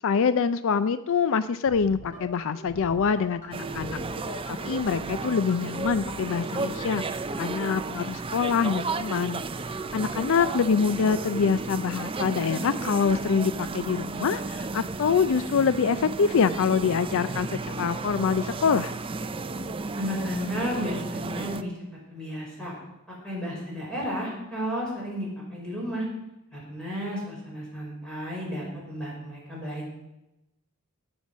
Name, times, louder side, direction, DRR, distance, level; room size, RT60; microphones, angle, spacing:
voice 1, 0.0-4.0 4.6-9.4 9.9-18.9, left 6 dB, 60° left, 14 dB, 0.4 m, -25 dB
sound 1, 1.7-6.8, left 2 dB, 40° left, 3.7 m, -44 dB
sound 2, 3.5-21.6, right 3 dB, 25° right, 0.5 m, -33 dB
voice 2, 20.0-21.7 22.1-22.7 23.2-26.0 26.5-29.9, equal, 5° left, -5 dB, 5.7 m, -33 dB
17.0 x 7.1 x 6.3 m, 0.94 s
head